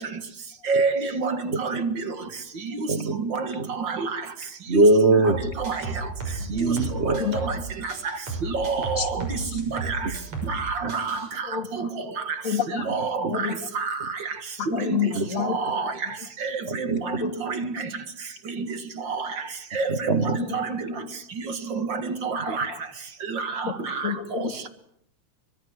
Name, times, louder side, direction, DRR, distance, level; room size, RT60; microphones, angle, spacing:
voice 1, 0.7-2.0 3.2-3.5 3.8-4.1 4.7-4.8 5.6-5.8 7.1-7.5 8.5-9.3 9.6-10.0 10.5-11.2 11.8-11.9 12.9-13.5 13.7-14.0 14.7-15.0 15.4-15.9 16.4-17.7 18.6-18.7 19.7-20.9 22.2-22.7 23.3-24.1, right 4 dB, 45° right, 2.3 m, -27 dB
voice 2, 4.7-5.4 6.5-7.2 9.0-9.1 15.1-15.3 16.7-17.0 19.9-20.4, right 2 dB, 85° right, 0.6 m, -21 dB
sound 1, 5.3-7.6 7.9-10.6 10.9-11.3, right 3 dB, 70° right, 7.7 m, -33 dB
voice 3, 11.5-11.9 12.4-12.9 13.3-13.5 14.6-15.6 15.8-15.9 17.2-17.3 20.4-20.6 24.0-24.5, left 8 dB, 30° left, 2.6 m, -28 dB
24.5 x 23.5 x 7.8 m
omnidirectional pair, 3.3 m